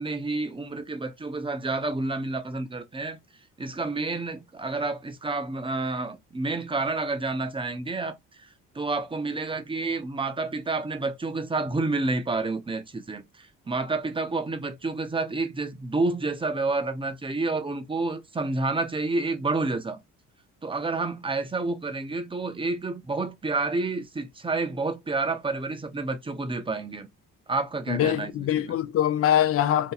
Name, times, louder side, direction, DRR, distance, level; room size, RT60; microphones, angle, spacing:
voice 1, 0.0-3.2 3.6-8.5 8.7-20.0 20.6-27.1 27.5-28.8, right 3 dB, 15° right, 0.7 m, -29 dB
voice 2, 27.9-29.9, left 11 dB, 50° left, 0.4 m, -23 dB
2.7 x 2.2 x 3.9 m
cardioid pair, 90°, 30 cm